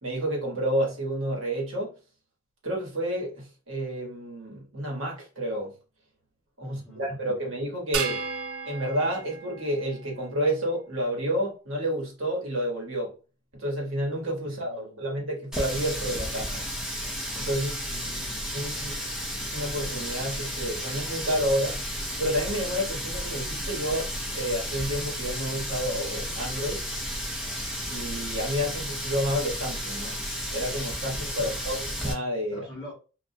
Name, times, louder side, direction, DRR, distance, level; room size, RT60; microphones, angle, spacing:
voice 1, 0.0-1.9 2.6-5.7 6.6-8.2 8.6-13.1 13.5-16.7 17.4-17.9 18.5-18.9 19.4-21.8 22.2-24.1 24.3-26.9 27.9-30.2 30.5-32.7, equal, 65° right, 1.1 m, -30 dB
voice 2, 6.6-7.4 14.4-15.1 17.9-18.9 31.7-31.8 32.5-32.9, left 1 dB, 15° left, 0.8 m, -46 dB
sound 1, 7.9-10.5, right 5 dB, 80° right, 0.4 m, -34 dB
Water tap faucet, 15.5-32.1, equal, 5° right, 0.4 m, -33 dB
2.3 x 2.1 x 2.7 m
head